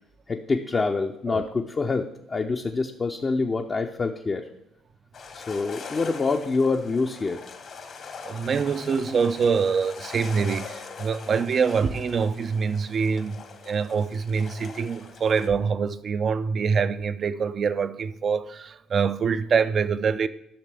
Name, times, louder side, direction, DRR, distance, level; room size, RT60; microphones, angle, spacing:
voice 1, 0.3-4.5 5.3-7.4, left 4 dB, 35° left, 0.7 m, -26 dB
sound 1, 5.1-15.5, left 5 dB, 55° left, 1.3 m, -42 dB
voice 2, 8.2-20.3, right 5 dB, 50° right, 0.5 m, -25 dB
12.0 x 6.6 x 3.5 m
hypercardioid pair, 55°, 0 cm